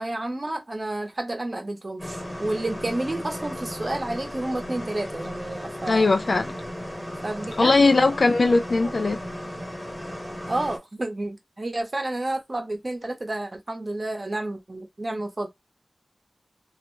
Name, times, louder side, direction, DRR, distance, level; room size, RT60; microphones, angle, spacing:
voice 1, 0.0-6.1 7.2-8.1 8.8-8.9 10.5-15.5, right 2 dB, 40° right, 0.8 m, -30 dB
sound 1, 2.0-10.8, equal, 15° left, 0.9 m, -35 dB
voice 2, 5.9-6.5 7.6-9.2, left 3 dB, 70° left, 0.4 m, -19 dB
2.4 x 2.1 x 3.1 m
wide cardioid pair, 65°, 0 cm